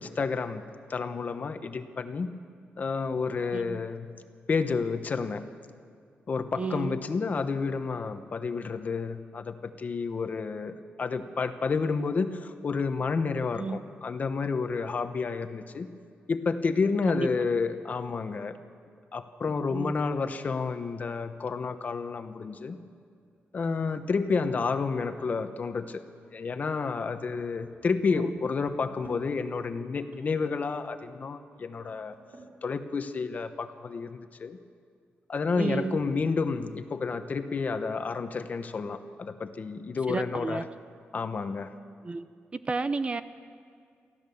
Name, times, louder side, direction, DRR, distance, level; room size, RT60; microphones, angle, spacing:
voice 1, 0.0-2.4 2.8-4.1 4.5-5.5 6.3-15.9 16.3-18.6 19.1-22.8 23.5-26.0 26.3-32.2 32.6-34.6 35.3-40.6 41.1-41.7, left 4 dB, 40° left, 9 dB, 1.0 m, -30 dB
voice 2, 3.5-3.8 6.6-7.0 13.5-13.8 17.1-17.3 19.7-19.9 28.1-28.4 35.6-36.0 40.1-40.6 42.0-42.3 42.7-43.2, right 3 dB, 30° right, 12 dB, 0.6 m, -31 dB
sound 1, 23.1-32.6, right 2 dB, 55° right, 3.2 m, -56 dB
24.5 x 15.0 x 7.1 m, 2.2 s
wide cardioid pair, 145°, 4 cm